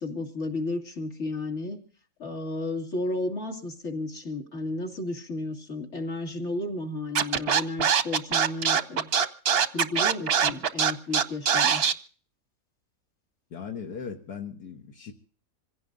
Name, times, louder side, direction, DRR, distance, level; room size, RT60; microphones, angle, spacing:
voice 1, 0.0-1.8 2.2-9.1 9.7-11.8, left 2 dB, 45° left, 2.8 m, -33 dB
Scratching (performance technique), 7.1-11.9, right 7 dB, 50° right, 0.8 m, -22 dB
voice 2, 13.5-15.1, left 6 dB, 75° left, 1.9 m, -38 dB
26.5 x 16.5 x 2.6 m
omnidirectional pair, 1.7 m